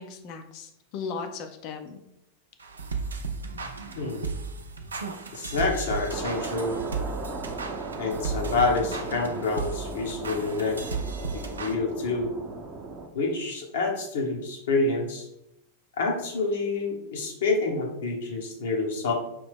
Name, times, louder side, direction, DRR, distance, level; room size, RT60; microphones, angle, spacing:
voice 1, 0.0-2.0, left 5 dB, 40° left, 6 dB, 0.6 m, -37 dB
sound 1, 2.6-11.8, right 4 dB, 75° right, 0.4 m, -35 dB
voice 2, 4.0-4.3 5.3-6.7 8.0-10.8 11.3-12.3 13.1-15.3 16.0-19.1, left 3 dB, 60° left, 0 dB, 1.1 m, -27 dB
sound 2, 6.1-13.1, right 3 dB, 25° right, 0.6 m, -37 dB
5.3 x 2.8 x 3.6 m, 0.81 s
figure-of-eight pair, 90°, 0 cm